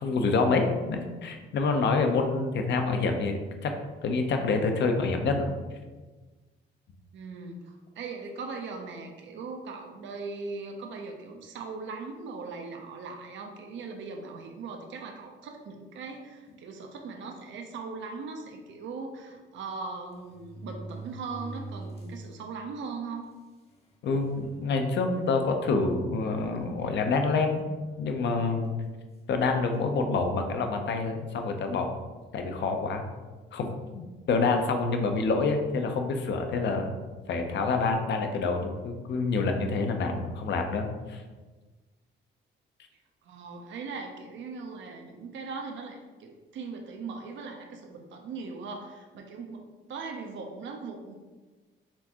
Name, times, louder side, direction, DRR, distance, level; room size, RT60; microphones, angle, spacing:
voice 1, 0.0-3.7 4.0-5.5 24.0-27.6 28.0-28.7 29.3-31.9 32.3-33.0 33.5-36.9 37.3-41.2, left 4 dB, 65° left, 4 dB, 0.6 m, -27 dB
voice 2, 7.1-23.2 43.3-51.1, right 4 dB, 70° right, 2 dB, 0.6 m, -39 dB
sound 1, 16.5-16.7 17.5-17.6 17.9-18.0 19.3-19.4 20.1-22.3 22.8-22.9 23.7-23.8 24.2-24.6 25.2-25.3 26.6-27.4 28.4-28.7, right 2 dB, 30° left, 0.9 m, -44 dB
4.4 x 3.4 x 2.9 m, 1.3 s
cardioid pair, 90°, 20 cm